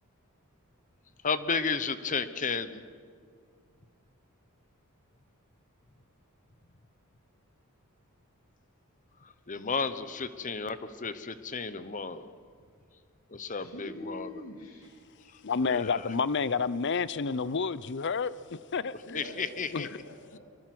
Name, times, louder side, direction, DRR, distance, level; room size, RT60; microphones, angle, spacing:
voice 1, 1.2-2.8 9.5-12.2 13.3-14.3 15.7-16.0 19.1-19.9, left 5 dB, 35° left, 12 dB, 1.0 m, -33 dB
voice 2, 13.5-14.9 19.0-20.4, left 1 dB, 70° left, -1 dB, 3.0 m, -44 dB
voice 3, 15.4-19.2 19.7-19.9, left 5 dB, 55° left, 18 dB, 0.6 m, -30 dB
25.0 x 22.5 x 6.1 m, 2.1 s
head